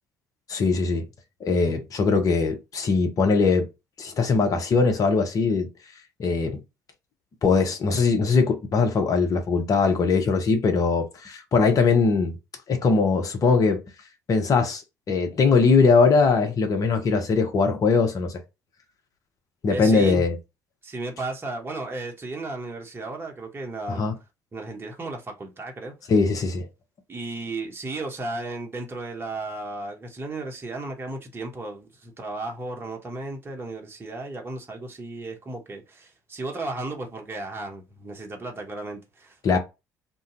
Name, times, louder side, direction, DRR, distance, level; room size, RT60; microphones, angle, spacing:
voice 1, 0.5-1.0 1.4-3.7 4.0-5.7 6.2-6.6 7.4-12.4 12.7-13.8 14.3-14.8 15.1-18.3 19.6-20.4 23.9-24.1 26.1-26.7 39.4-39.6, left 4 dB, 40° left, 0.9 m, -21 dB
voice 2, 19.7-20.2 20.8-24.1 24.5-25.9 27.1-39.6, right 2 dB, 25° right, 1.0 m, -34 dB
2.6 x 2.3 x 3.8 m
figure-of-eight pair, 55°, 9 cm